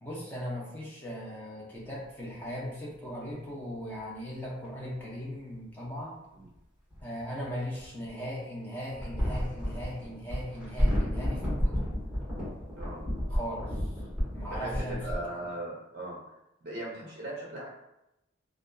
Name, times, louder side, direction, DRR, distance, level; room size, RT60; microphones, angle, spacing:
voice 1, 0.0-6.2 7.0-11.9 13.3-13.9 14.3-15.0, equal, 10° left, -6 dB, 0.6 m, -38 dB
sound 1, 4.6-4.7 6.9-8.1 8.9-15.2, equal, 5° right, 1.3 m, -31 dB
voice 2, 14.5-16.2 16.6-17.7, right 1 dB, 50° right, -4 dB, 0.6 m, -38 dB
2.6 x 2.3 x 2.2 m, 0.89 s
head